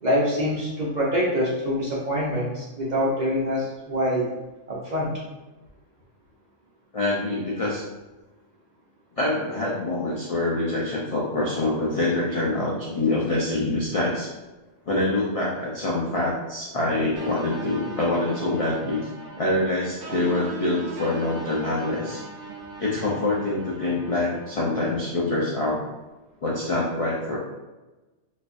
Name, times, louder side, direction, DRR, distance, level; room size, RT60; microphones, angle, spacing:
voice 1, 0.0-4.3 4.7-5.1, equal, 45° right, -5 dB, 0.7 m, -25 dB
voice 2, 6.9-7.9 9.2-14.3 14.9-19.1 19.4-22.2 22.8-25.8 26.4-27.4, left 2 dB, 55° left, -5 dB, 0.4 m, -25 dB
sound 1, 17.2-24.8, right 3 dB, 70° right, 1.0 m, -38 dB
4.0 x 2.6 x 2.5 m, 1.1 s
omnidirectional pair, 1.3 m